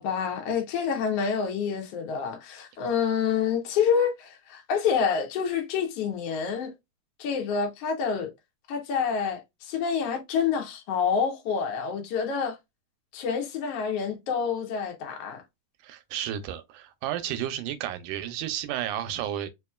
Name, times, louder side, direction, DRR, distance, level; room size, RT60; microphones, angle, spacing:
voice 1, 0.0-6.7 7.2-8.3 8.7-12.6 13.1-15.4, left 6 dB, 65° left, 1.6 m, -27 dB
voice 2, 15.8-19.5, right 11 dB, 90° right, 2.1 m, -32 dB
4.7 x 2.9 x 2.2 m
omnidirectional pair, 3.5 m